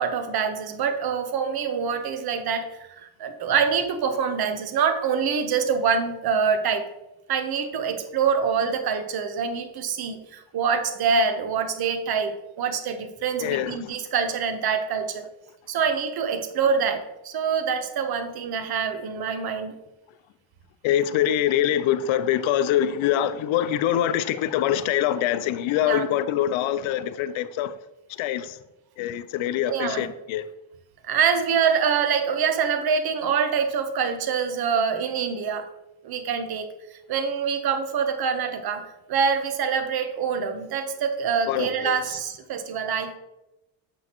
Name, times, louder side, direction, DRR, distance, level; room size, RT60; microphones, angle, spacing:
voice 1, 0.0-6.9 7.3-15.3 15.7-19.7 25.8-26.1 29.7-30.1 31.0-35.7 36.0-43.2, right 6 dB, 50° right, 1.0 m, -25 dB
voice 2, 13.4-13.8 20.8-27.7 28.2-28.6 29.0-30.4 41.5-42.0, left 11 dB, 75° left, 0.6 m, -24 dB
7.7 x 6.1 x 3.0 m
cardioid pair, 100°, 47 cm